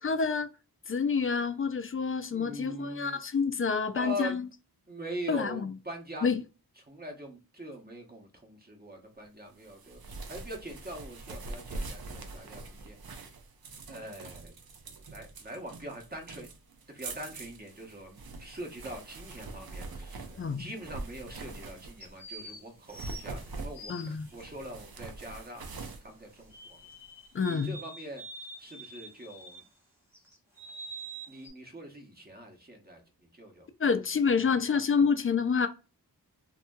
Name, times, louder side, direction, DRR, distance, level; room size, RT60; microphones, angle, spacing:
voice 1, 0.0-0.5 0.9-4.5 5.3-5.7 6.2-6.4 20.4-20.7 23.9-24.3 27.3-27.8 33.8-35.7, left 5 dB, 35° left, 0.4 m, -28 dB
voice 2, 2.3-3.2 3.9-4.4 4.9-6.3 6.9-13.0 13.9-14.6 15.1-16.5 16.9-20.3 20.6-26.8 27.4-29.6 31.3-33.7 34.4-34.6, right 1 dB, 25° right, 0.8 m, -43 dB
sound 1, 9.6-22.2 22.7-27.1, right 3 dB, 70° right, 0.6 m, -44 dB
sound 2, 19.6-20.6 22.0-24.4 26.5-29.7 30.1-31.5, right 2 dB, 5° right, 1.2 m, -46 dB
2.8 x 2.6 x 2.2 m
wide cardioid pair, 80°, 38 cm